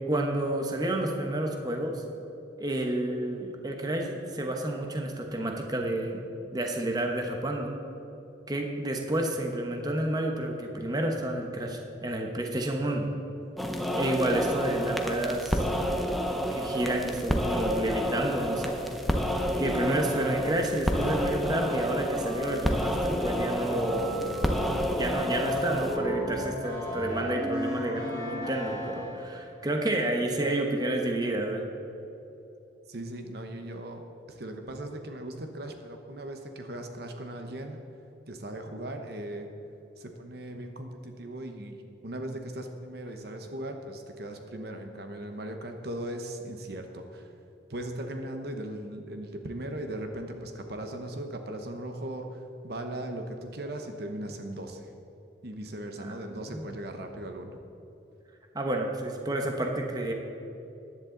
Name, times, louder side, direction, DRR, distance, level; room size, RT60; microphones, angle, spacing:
voice 1, 0.1-2.0 2.6-6.2 6.5-7.8 8.5-13.1 13.9-15.6 16.4-18.8 19.6-24.1 24.9-31.6 56.0-56.7 58.5-60.1, right 1 dB, 20° right, 2 dB, 1.0 m, -30 dB
sound 1, 13.6-26.0, equal, ahead, 0.7 m, -29 dB
sound 2, 22.1-29.4, equal, 20° left, 2.8 m, -35 dB
voice 2, 32.9-37.8 38.3-39.5 40.0-47.3 47.7-54.9 55.4-57.6, right 1 dB, 60° right, 5 dB, 1.0 m, -38 dB
14.5 x 10.5 x 3.9 m, 2.9 s
head